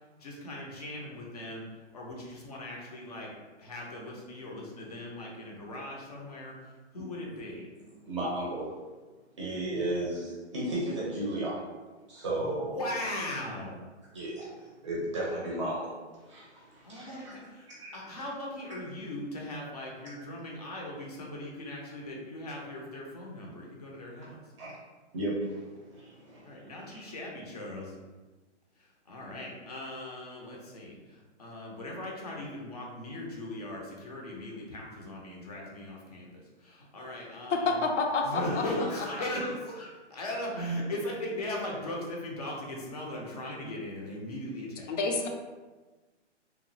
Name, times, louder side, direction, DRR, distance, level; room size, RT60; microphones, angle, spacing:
voice 1, 0.2-1.7 1.9-3.3 3.6-6.5 6.9-7.7 9.7-9.8 12.3-13.8 16.8-24.4 26.4-27.9 29.1-36.3 36.6-37.8 38.2-44.9, left 1 dB, 35° left, -2 dB, 0.5 m, -38 dB
voice 2, 8.0-8.7 9.4-11.6 12.1-12.8 14.1-15.9 16.3-17.3 17.7-18.0 24.6-24.7 25.1-27.0, right 1 dB, 25° right, -6 dB, 0.6 m, -34 dB
voice 3, 37.5-38.6 44.9-45.3, left 3 dB, 75° left, 2 dB, 0.6 m, -28 dB
2.8 x 2.3 x 2.6 m, 1.3 s
hypercardioid pair, 160°, 36 cm